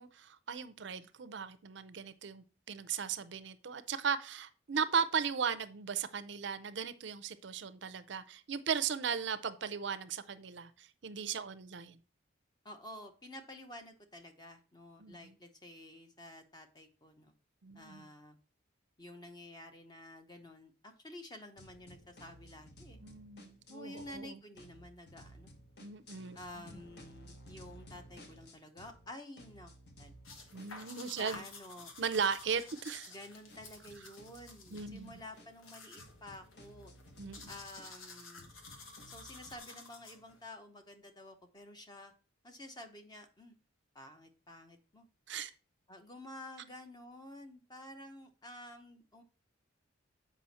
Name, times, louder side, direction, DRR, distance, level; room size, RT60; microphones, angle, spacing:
voice 1, 0.0-12.0 15.0-15.2 17.6-18.1 23.0-24.4 25.8-26.7 30.5-31.4 32.0-33.1 34.7-35.2 37.2-37.5 45.3-45.5, right 6 dB, 60° right, 0.5 m, -37 dB
voice 2, 12.6-17.3 17.7-18.4 19.0-23.0 23.7-25.5 26.3-29.7 30.0-30.1 31.2-31.9 33.1-36.9 37.5-38.5 39.1-42.1 42.4-43.6 43.9-45.1 45.9-49.2, left 1 dB, 20° left, 0.8 m, -51 dB
sound 1, 21.6-24.2 24.5-29.1 29.4-39.6, equal, 55° left, 1.1 m, -57 dB
sound 2, 30.2-40.5, left 3 dB, 85° left, 1.4 m, -53 dB
7.6 x 5.2 x 4.2 m
head